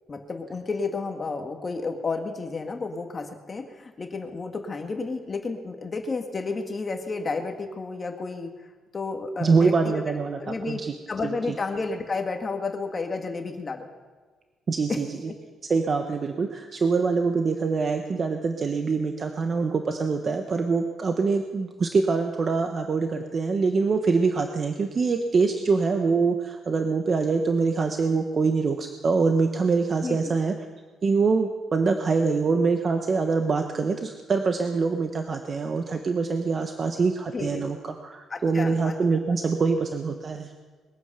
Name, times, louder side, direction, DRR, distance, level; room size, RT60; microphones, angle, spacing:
voice 1, 0.1-8.5 8.9-10.0 10.4-10.8 11.1-13.9 14.9-15.0 30.0-30.3 37.3-37.6 38.3-39.0, left 3 dB, 35° left, 4 dB, 1.7 m, -31 dB
voice 2, 9.4-10.9 11.2-11.3 14.7-15.1 15.7-30.5 31.0-37.8 38.0-40.5, right 4 dB, 40° right, 5 dB, 1.2 m, -24 dB
21.5 x 9.5 x 6.8 m, 1.4 s
cardioid pair, 90°, 0 cm